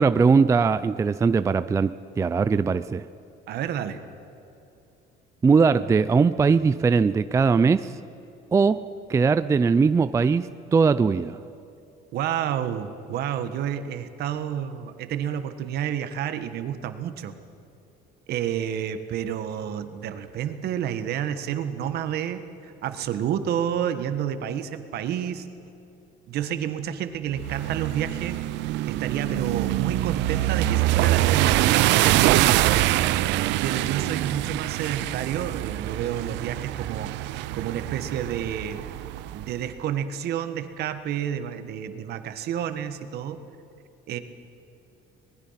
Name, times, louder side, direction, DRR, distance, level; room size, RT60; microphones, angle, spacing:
voice 1, 0.0-3.0 5.4-7.9 8.5-8.8 9.1-11.4, right 5 dB, 15° right, 13 dB, 0.4 m, -20 dB
voice 2, 3.5-4.0 12.1-17.3 18.3-25.5 26.3-28.4 28.8-33.2 33.6-37.1 37.5-38.8 39.3-43.4 44.1-44.2, right 9 dB, 65° right, 9 dB, 1.5 m, -30 dB
sound 1, 27.4-39.5, right 15 dB, 80° right, 0.6 m, -24 dB
25.5 x 20.5 x 5.8 m, 2.8 s
cardioid pair, 140°, 18 cm